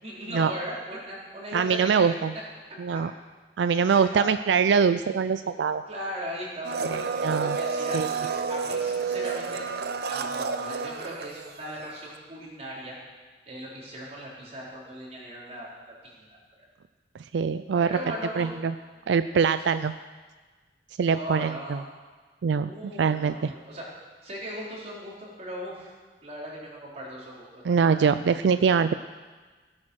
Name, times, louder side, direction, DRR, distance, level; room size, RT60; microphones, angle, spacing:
voice 1, 0.0-2.2 2.7-3.0 3.9-4.3 5.9-9.6 10.1-12.9 13.5-15.7 16.0-16.6 17.7-18.5 21.1-21.9 22.6-23.8 24.2-25.9 26.2-28.0, equal, 40° right, -5 dB, 4.0 m, -38 dB
voice 2, 1.5-2.3 2.8-3.1 3.6-5.8 6.9-7.6 7.9-8.1 17.3-18.0 18.4-18.7 19.1-19.9 21.0-21.8 22.4-22.7 23.0-23.5 27.6-28.9, right 6 dB, 85° right, 11 dB, 0.4 m, -23 dB
Domestic sounds home sounds, 6.6-11.9 12.2-12.3, right 5 dB, 60° right, 0.7 m, -30 dB
16.5 x 8.7 x 6.4 m, 1.4 s
head